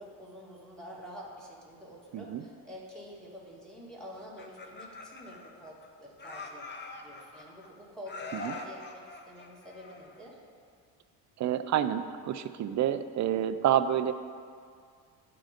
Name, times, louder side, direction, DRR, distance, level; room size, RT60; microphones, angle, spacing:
voice 1, 0.0-6.7 7.0-10.4, equal, ahead, -6 dB, 1.9 m, -47 dB
Laughter, 4.2-5.9 6.2-7.7 8.1-10.3, left 3 dB, 25° left, 0.8 m, -44 dB
voice 2, 11.4-14.1, right 10 dB, 40° right, 11 dB, 0.5 m, -28 dB
11.5 x 3.9 x 5.0 m, 2.1 s
cardioid pair, 95°, 45 cm